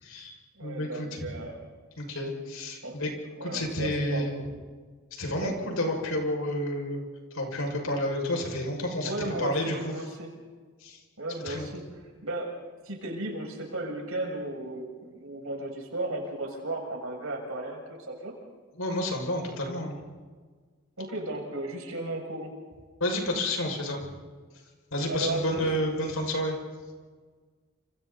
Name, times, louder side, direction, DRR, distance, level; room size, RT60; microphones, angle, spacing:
voice 1, 0.0-0.3 0.6-1.3 2.0-3.1 3.4-4.4 5.2-7.0 7.3-10.0 10.8-11.0 11.4-11.7 18.8-20.0 23.0-24.0 24.9-26.6, left 1 dB, 75° left, 2 dB, 6.4 m, -30 dB
voice 2, 0.6-1.6 2.8-3.0 3.3-4.5 5.4-5.5 9.0-10.3 11.2-18.3 21.0-22.5 25.1-25.7, right 2 dB, 75° right, 0 dB, 7.1 m, -35 dB
29.5 x 27.5 x 4.2 m, 1.5 s
head